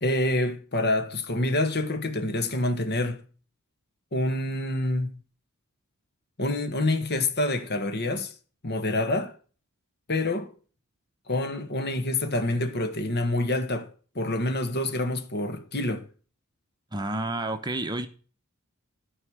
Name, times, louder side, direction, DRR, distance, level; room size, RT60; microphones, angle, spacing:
voice 1, 0.0-3.2 4.1-5.2 6.4-8.3 8.6-9.3 10.1-10.5 11.3-16.1, left 2 dB, 50° left, 1.8 m, -27 dB
voice 2, 16.9-18.1, right 2 dB, 20° right, 0.9 m, -30 dB
13.5 x 5.6 x 6.4 m
head